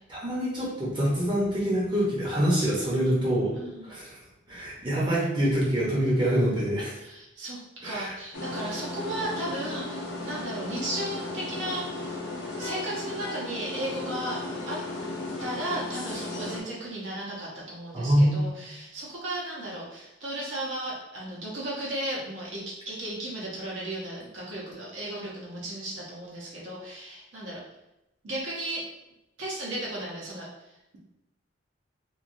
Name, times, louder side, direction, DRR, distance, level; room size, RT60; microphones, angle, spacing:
voice 1, 0.1-3.5 3.8-4.2 4.5-6.9 7.8-8.1 17.9-18.5, equal, 25° right, -6 dB, 0.6 m, -25 dB
voice 2, 3.5-3.9 7.0-7.6 7.8-11.8 12.6-14.8 15.4-27.6 28.2-28.8 29.4-30.5, right 1 dB, 75° right, -5 dB, 0.6 m, -35 dB
sound 1, 8.3-16.6, left 2 dB, 70° left, 0.6 m, -35 dB
3.0 x 2.2 x 2.5 m, 0.91 s
head